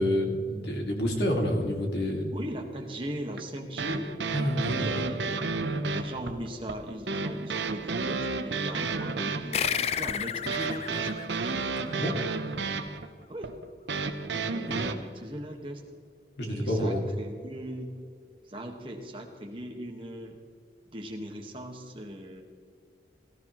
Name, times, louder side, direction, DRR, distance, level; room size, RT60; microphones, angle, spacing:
voice 1, 0.0-2.3 4.3-4.9 11.8-12.2 14.5-14.9 16.4-17.0, equal, 75° left, 1 dB, 2.2 m, -28 dB
voice 2, 2.3-4.1 4.8-5.6 5.9-11.1 13.3-13.5 14.3-15.8 16.4-17.9 18.5-20.4 20.9-22.4, equal, 30° right, 2 dB, 1.5 m, -39 dB
sound 1, 3.4-14.9, right 4 dB, 90° right, 0.8 m, -32 dB
sound 2, 9.5-12.5, left 8 dB, 35° left, 0.3 m, -33 dB
17.5 x 14.0 x 3.1 m, 2.1 s
head